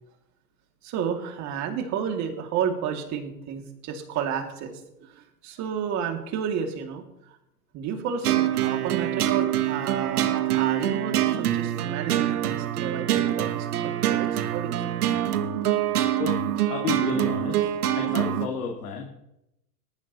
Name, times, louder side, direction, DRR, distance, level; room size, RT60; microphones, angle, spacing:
voice 1, 0.8-7.0 7.7-15.0, right 7 dB, 35° right, 4 dB, 2.6 m, -31 dB
sound 1, 8.2-18.5, right 12 dB, 75° right, 1.3 m, -25 dB
voice 2, 16.7-17.7 17.9-19.1, left 6 dB, 70° left, 1 dB, 2.4 m, -31 dB
19.0 x 14.0 x 3.1 m, 0.86 s
hypercardioid pair, 125°, 46 cm